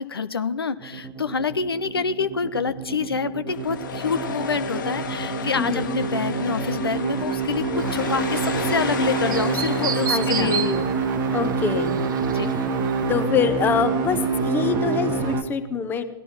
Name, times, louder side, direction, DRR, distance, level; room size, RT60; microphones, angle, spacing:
voice 1, 0.0-10.9 12.3-12.5, left 5 dB, 70° left, 13 dB, 0.7 m, -27 dB
sound 1, 0.8-15.4, right 5 dB, 20° right, 1.1 m, -27 dB
sound 2, 3.5-15.4, left 5 dB, 55° left, 1.6 m, -34 dB
voice 2, 5.6-6.0 10.1-10.5 11.3-12.0 12.5-12.6 13.1-16.0, left 6 dB, 15° left, 10 dB, 1.0 m, -25 dB
Chirp tweet, 7.8-13.3, right 8 dB, 55° right, 0.8 m, -33 dB
17.5 x 11.5 x 5.9 m, 1.1 s
figure-of-eight pair, 110°, 13 cm